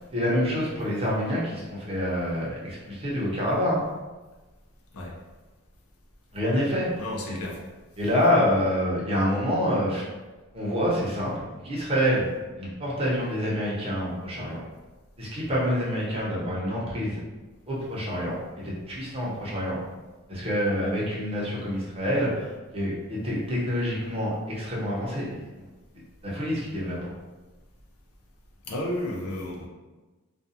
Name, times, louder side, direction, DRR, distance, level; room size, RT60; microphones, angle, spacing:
voice 1, 0.1-3.9 6.3-7.4 8.0-10.0 10.5-12.3 12.6-14.6 15.2-17.2 17.7-19.8 20.3-25.4 26.2-27.1, equal, 25° right, -6 dB, 0.7 m, -27 dB
voice 2, 7.0-7.6 28.7-29.7, left 1 dB, 80° left, -2 dB, 0.6 m, -32 dB
2.5 x 2.3 x 2.7 m, 1.2 s
head